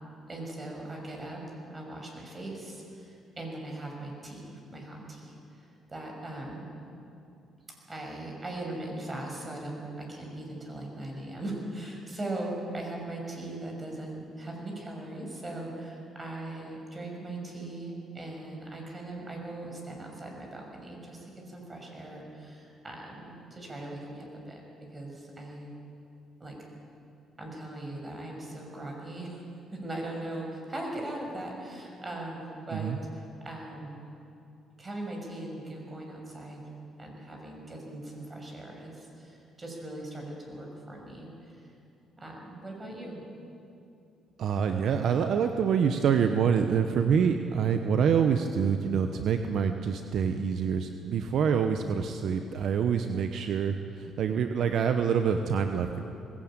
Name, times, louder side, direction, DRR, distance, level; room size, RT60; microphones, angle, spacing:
voice 1, 0.3-1.4 1.7-6.7 7.9-25.7 26.4-26.5 27.4-29.4 29.7-34.1 34.8-36.6 37.0-41.6 42.2-43.2, right 1 dB, 25° right, 1 dB, 6.4 m, -39 dB
voice 2, 44.4-56.0, right 7 dB, 70° right, 7 dB, 1.0 m, -26 dB
20.5 x 16.5 x 9.0 m, 2.7 s
cardioid pair, 80°, 0 cm